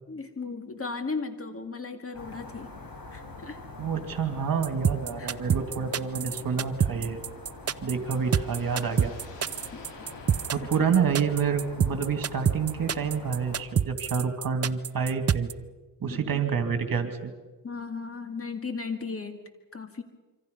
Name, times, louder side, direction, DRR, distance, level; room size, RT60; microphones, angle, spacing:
voice 1, 0.1-2.7 3.1-3.6 5.2-5.4 9.7-9.8 10.8-10.9 16.1-16.4 17.6-19.4 19.7-20.0, left 4 dB, 35° left, 7 dB, 2.2 m, -36 dB
sound 1, 2.1-13.6, left 2 dB, 55° left, 5.1 m, -44 dB
voice 2, 3.8-7.2 7.8-9.1 10.5-15.5 16.0-17.3, right 6 dB, 55° right, 7 dB, 2.7 m, -28 dB
sound 2, 4.6-15.5, right 8 dB, 35° right, 0.7 m, -26 dB
sound 3, 7.4-12.4, left 4 dB, 90° left, 4.0 m, -50 dB
26.0 x 25.0 x 5.5 m, 1.2 s
cardioid pair, 90°, 41 cm